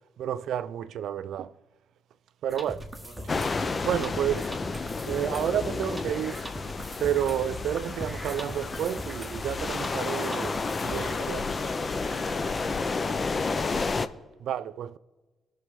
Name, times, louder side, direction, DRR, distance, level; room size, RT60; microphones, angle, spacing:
voice 1, 0.2-1.5 2.4-2.9 3.8-4.6 5.1-6.4 7.0-10.5 10.8-11.4 14.4-15.0, right 10 dB, 75° right, 0.3 m, -30 dB
sound 1, 2.5-11.2, equal, 10° right, 1.3 m, -40 dB
voice 2, 3.0-3.4 10.7-13.9, left 1 dB, 55° left, 2.8 m, -43 dB
sound 2, 3.3-14.1, left 4 dB, 35° left, 0.5 m, -31 dB
18.0 x 6.2 x 3.6 m
cardioid pair, 90°, 0 cm